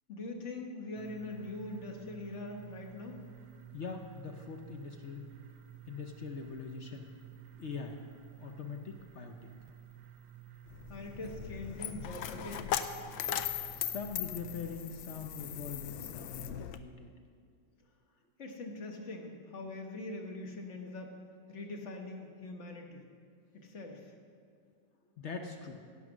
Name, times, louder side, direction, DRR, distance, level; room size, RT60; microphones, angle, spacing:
voice 1, 0.1-3.2 10.9-12.7 18.4-21.2 21.5-23.1 23.5-24.2, left 2 dB, 45° left, 3 dB, 1.3 m, -43 dB
sound 1, 0.9-14.7, right 10 dB, 70° right, 1.1 m, -53 dB
voice 2, 3.7-5.2 5.9-7.1 7.6-8.0 8.4-9.5 13.8-17.1 25.2-25.8, left 5 dB, 65° left, 4 dB, 0.7 m, -42 dB
Coin (dropping), 10.7-16.8, left 10 dB, 85° left, 1.3 m, -39 dB
17.0 x 5.8 x 6.1 m, 2.3 s
omnidirectional pair, 2.0 m